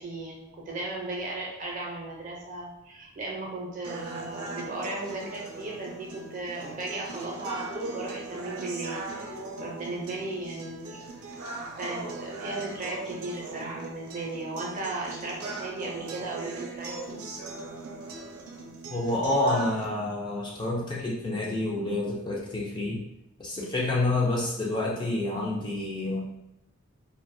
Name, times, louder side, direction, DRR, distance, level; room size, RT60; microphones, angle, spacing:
voice 1, 0.0-11.1 11.8-17.2, right 2 dB, 35° right, -2 dB, 0.5 m, -36 dB
sound 1, 3.8-19.9, right 3 dB, 90° right, 0.5 m, -39 dB
voice 2, 18.9-23.0 23.4-26.2, left 2 dB, 20° left, -4 dB, 0.3 m, -28 dB
2.3 x 2.1 x 2.6 m, 0.85 s
head